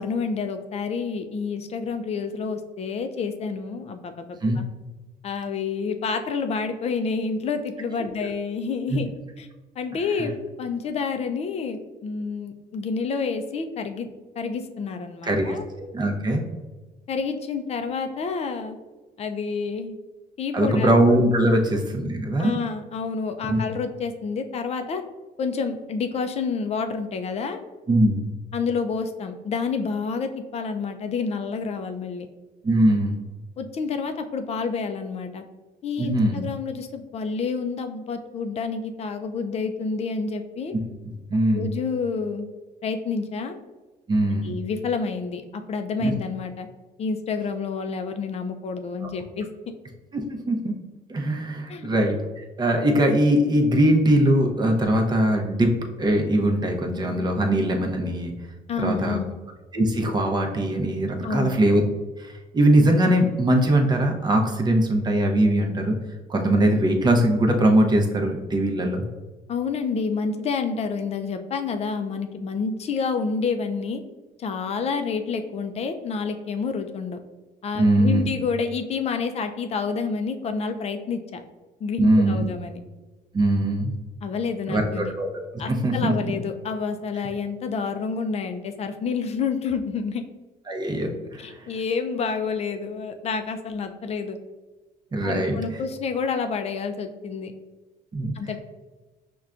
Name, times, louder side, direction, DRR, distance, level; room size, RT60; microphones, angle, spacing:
voice 1, 0.0-4.3 4.6-4.7 5.2-9.1 9.4-9.5 9.8-14.1 14.4-15.6 17.1-18.8 19.2-20.0 20.4-20.9 21.5-21.6 22.4-25.0 25.4-27.6 28.5-32.3 33.6-35.4 35.8-40.7 41.5-42.5 42.8-43.6 44.4-46.7 47.0-49.5 51.7-51.9 58.7-59.3 61.2-61.6 69.5-74.0 74.4-77.2 77.6-81.4 81.8-82.8 84.2-85.1 85.6-90.2 91.4-94.4 95.2-97.5 98.3-98.6, left 5 dB, 40° left, 7 dB, 0.4 m, -29 dB
voice 2, 15.2-15.6 15.9-16.4 20.5-22.5 23.5-23.6 27.9-28.3 32.6-33.2 36.0-36.4 41.1-41.7 44.1-44.6 46.0-46.1 50.1-50.7 51.1-58.3 58.8-59.2 59.7-61.8 62.2-65.9 66.3-69.0 77.8-78.3 82.0-82.4 83.3-84.0 84.7-85.3 85.7-86.3 90.7-91.5 95.1-95.6 98.1-98.3, right 1 dB, 25° right, 2 dB, 0.6 m, -21 dB
5.8 x 2.2 x 2.4 m, 1.2 s
cardioid pair, 110°, 17 cm